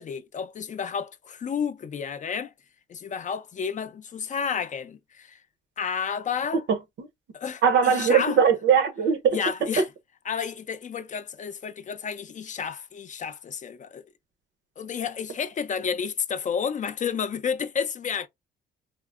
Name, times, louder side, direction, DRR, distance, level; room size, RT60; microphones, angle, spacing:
voice 1, 0.0-2.5 2.9-5.4 5.8-6.6 7.3-8.4 9.3-9.9 10.2-14.1 14.8-18.3, left 7 dB, 40° left, 0.4 m, -31 dB
voice 2, 7.6-9.4, right 7 dB, 70° right, 0.7 m, -20 dB
3.5 x 2.0 x 2.3 m
cardioid pair, 90°, 20 cm